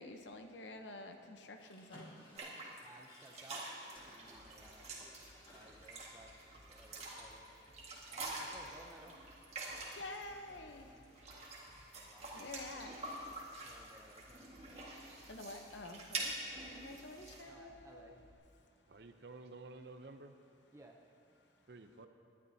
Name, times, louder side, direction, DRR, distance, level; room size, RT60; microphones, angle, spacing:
voice 1, 0.0-2.1 10.0-10.9 12.3-12.9 15.3-16.3 16.7-18.3, left 2 dB, 70° left, 6 dB, 0.8 m, -49 dB
sound 1, 1.6-6.6, equal, 25° left, 1.8 m, -59 dB
voice 2, 2.4-10.0 10.5-11.0 11.3-12.5 13.4-15.3 16.7-16.9 17.4-19.2 20.7-21.6 21.9-22.0, right 1 dB, 15° right, 0 dB, 0.6 m, -60 dB
sound 2, 2.4-10.2 11.0-17.4, right 2 dB, 35° right, 1.7 m, -47 dB
sound 3, 4.0-18.3, left 1 dB, 50° left, 2.1 m, -64 dB
voice 3, 18.9-20.3 21.7-22.1, right 3 dB, 60° right, 8 dB, 0.6 m, -52 dB
19.0 x 11.0 x 2.8 m, 2.5 s
head